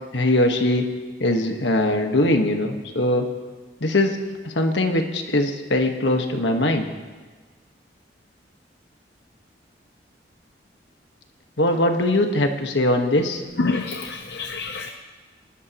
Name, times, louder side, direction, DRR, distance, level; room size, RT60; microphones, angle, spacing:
voice 1, 0.1-0.9 1.2-3.3 3.8-6.9 11.6-13.4, left 1 dB, 85° left, 4 dB, 1.5 m, -21 dB
voice 2, 13.6-14.9, left 3 dB, 65° left, 3 dB, 0.8 m, -27 dB
27.5 x 12.0 x 3.1 m, 1.4 s
head